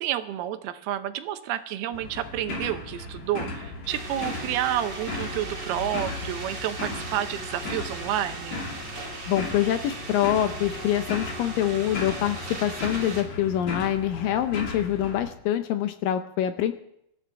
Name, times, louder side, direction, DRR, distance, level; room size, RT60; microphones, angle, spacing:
voice 1, 0.0-8.6, right 12 dB, 85° right, 10 dB, 2.8 m, -30 dB
sound 1, 1.9-15.3, left 3 dB, 50° left, 3.6 m, -36 dB
sound 2, 3.9-13.2, right 3 dB, 30° right, 2.7 m, -38 dB
voice 2, 9.3-16.7, left 11 dB, 75° left, 9 dB, 2.2 m, -25 dB
25.0 x 13.5 x 3.4 m, 0.77 s
omnidirectional pair, 4.4 m